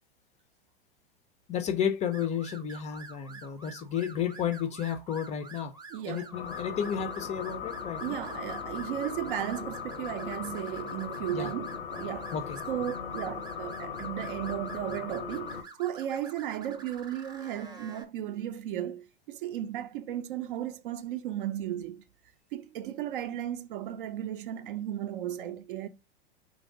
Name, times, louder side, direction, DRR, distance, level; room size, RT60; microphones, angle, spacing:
voice 1, 1.5-5.7 6.0-8.2 11.3-11.5 12.3-12.6, left 8 dB, 25° left, 0.5 m, -32 dB
sound 1, 2.1-18.0, right 4 dB, 15° right, 0.7 m, -49 dB
voice 2, 5.9-6.4 8.0-12.4 12.7-22.0 22.5-25.9, right 11 dB, 55° right, 0.5 m, -35 dB
sound 2, 6.3-15.6, left 7 dB, 75° left, 0.7 m, -38 dB
3.0 x 2.6 x 3.7 m
figure-of-eight pair, 95°, 31 cm